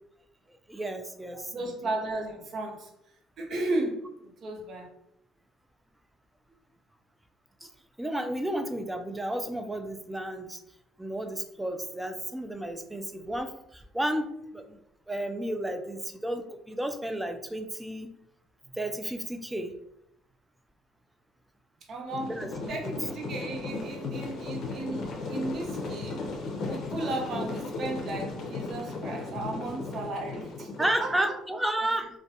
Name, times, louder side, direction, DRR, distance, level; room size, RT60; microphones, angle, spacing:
voice 1, 0.7-1.5 7.6-7.7 8.0-10.6 11.0-14.8 15.1-18.1 18.8-19.7 22.4-22.5 22.8-23.0 30.8-32.1, right 1 dB, 10° right, 6 dB, 0.3 m, -32 dB
voice 2, 1.5-2.9 3.4-4.9 21.9-22.4 22.7-26.2 26.7-31.2, right 2 dB, 50° right, 2 dB, 0.6 m, -34 dB
sound 1, 22.1-31.2, left 3 dB, 60° left, 0.6 m, -36 dB
2.4 x 2.1 x 2.7 m, 0.79 s
supercardioid pair, 95°, 0 cm